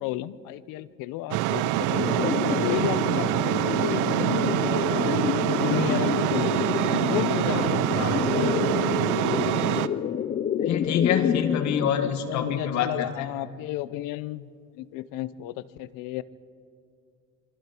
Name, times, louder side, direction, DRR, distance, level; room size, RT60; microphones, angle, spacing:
voice 1, 0.0-5.2 5.5-6.5 7.0-7.8 11.8-16.2, left 15 dB, 85° left, 17 dB, 0.7 m, -33 dB
sound 1, 1.3-9.9, right 15 dB, 70° right, 0.6 m, -25 dB
sound 2, 1.9-11.9, left 9 dB, 30° left, 0.5 m, -28 dB
voice 2, 7.5-8.7 10.6-13.3, left 8 dB, 60° left, 8 dB, 1.7 m, -27 dB
26.5 x 24.0 x 4.5 m, 2.4 s
cardioid pair, 150°, 32 cm